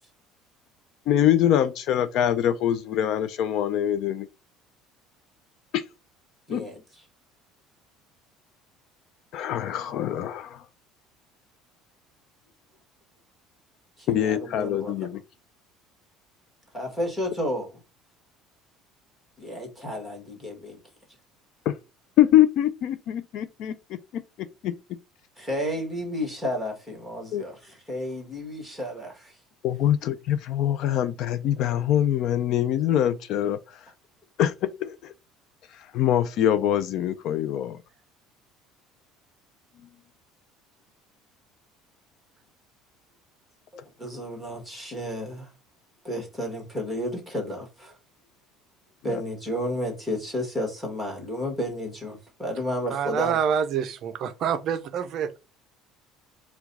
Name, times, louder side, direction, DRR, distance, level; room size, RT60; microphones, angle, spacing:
voice 1, 1.1-4.3 5.7-5.8 6.5-6.7 9.3-10.6 14.1-15.2 21.7-21.8 22.2-24.8 27.3-27.4 29.6-33.8 34.4-35.1 35.7-37.8 49.0-49.2, left 11 dB, 55° left, 0.4 m, -24 dB
voice 2, 6.5-6.8 14.0-15.1 16.7-17.8 19.4-20.8 25.4-29.3 43.7-45.5 46.0-47.9 49.0-53.4, equal, 5° left, 1.6 m, -32 dB
voice 3, 52.9-55.4, right 7 dB, 45° right, 0.4 m, -27 dB
4.6 x 2.2 x 4.0 m
cardioid pair, 160°, 0 cm